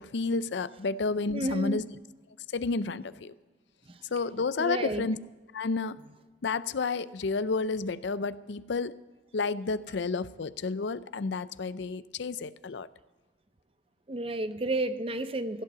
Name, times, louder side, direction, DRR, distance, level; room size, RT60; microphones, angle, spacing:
voice 1, 0.0-1.9 2.5-3.3 4.1-5.2 5.5-6.0 6.4-8.9 9.3-12.9, left 4 dB, 70° left, 0.5 m, -31 dB
voice 2, 1.3-1.9 3.9-4.0 4.6-5.0 14.1-15.6, right 2 dB, 30° right, 0.6 m, -31 dB
15.5 x 8.3 x 6.8 m
head